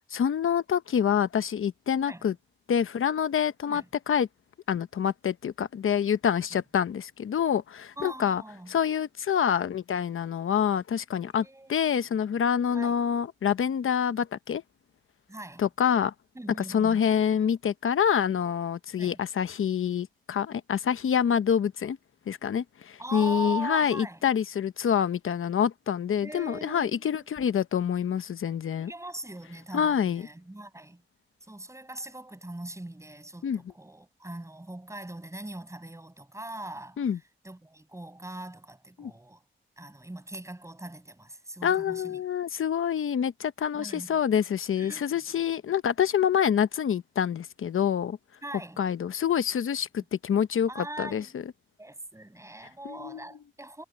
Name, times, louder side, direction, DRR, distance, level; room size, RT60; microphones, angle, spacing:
voice 1, 0.1-2.3 2.7-4.3 4.7-8.4 8.7-14.6 15.6-16.1 16.7-22.0 22.3-28.9 29.7-30.3 33.4-33.6 37.0-37.2 39.0-39.1 41.6-48.2 48.8-51.4 52.8-53.2, left 8 dB, 85° left, 0.9 m, -26 dB
voice 2, 8.0-8.7 11.3-12.1 12.7-13.0 15.3-15.7 16.3-17.0 19.0-19.2 23.0-24.2 26.2-27.3 28.8-31.0 31.5-37.0 37.4-39.4 39.8-42.2 43.7-44.2 44.8-45.3 48.4-48.8 50.0-50.1 50.7-51.3 51.8-53.8, right 1 dB, 15° right, 7.5 m, -41 dB
wide cardioid pair, 95°, 21 cm